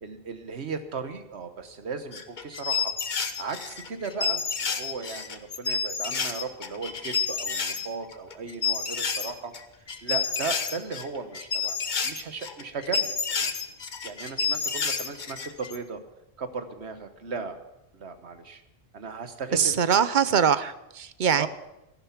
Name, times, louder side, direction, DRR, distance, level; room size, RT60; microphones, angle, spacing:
voice 1, 0.0-9.5 10.0-11.8 12.0-13.5 14.0-16.0 16.4-17.6 17.9-18.6 18.9-20.0 21.3-21.5, right 4 dB, 70° right, 9 dB, 1.4 m, -36 dB
sound 1, 2.1-9.6 9.9-15.8, left 5 dB, 45° left, 1.0 m, -29 dB
voice 2, 19.5-21.5, right 7 dB, 50° right, 14 dB, 0.7 m, -23 dB
14.0 x 11.5 x 5.9 m, 0.90 s
omnidirectional pair, 1.1 m